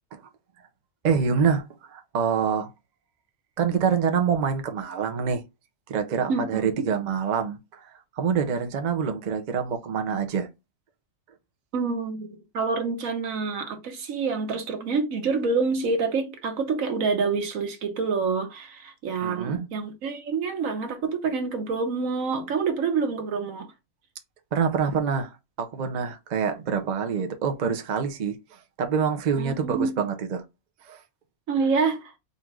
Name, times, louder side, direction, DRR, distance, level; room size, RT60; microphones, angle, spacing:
voice 1, 1.0-2.7 3.6-5.4 5.9-10.5 19.2-19.7 24.5-30.4 30.8-31.0, right 6 dB, 45° right, 0.6 m, -26 dB
voice 2, 6.3-6.9 11.7-12.3 12.5-23.7 29.3-30.0 31.5-32.1, right 4 dB, 80° right, 1.4 m, -27 dB
4.1 x 2.5 x 4.6 m
omnidirectional pair, 1.4 m